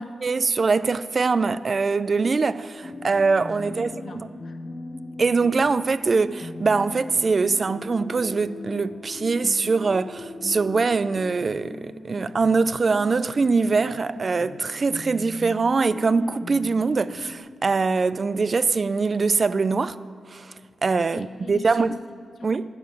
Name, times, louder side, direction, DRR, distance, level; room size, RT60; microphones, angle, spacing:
voice 1, 0.2-3.9 5.2-20.0 20.3-20.5 20.8-21.9 22.4-22.7, right 4 dB, 45° right, 0.3 m, -23 dB
sound 1, 2.8-17.4, left 2 dB, 40° left, 0.8 m, -39 dB
voice 2, 3.6-4.6 21.1-22.6, left 4 dB, 65° left, 0.9 m, -41 dB
9.5 x 7.0 x 7.8 m
cardioid pair, 80°, 0 cm